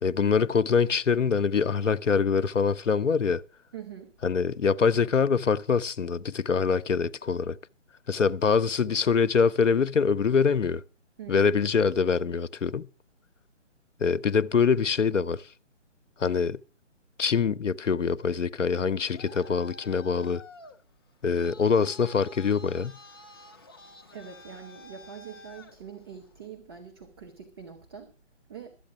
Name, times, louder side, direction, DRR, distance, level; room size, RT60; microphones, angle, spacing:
voice 1, 0.0-3.4 4.2-7.6 8.1-10.8 11.3-12.9 14.0-15.4 16.2-16.6 17.2-20.4 21.2-23.0, left 6 dB, 75° left, 0.7 m, -24 dB
voice 2, 3.7-4.1 11.2-11.6 24.1-28.1 28.5-28.8, right 7 dB, 20° right, 0.9 m, -44 dB
Traffic noise roadway noise, 18.8-26.5, left 2 dB, 20° left, 0.6 m, -50 dB
12.5 x 8.5 x 6.0 m
figure-of-eight pair, 145°, 37 cm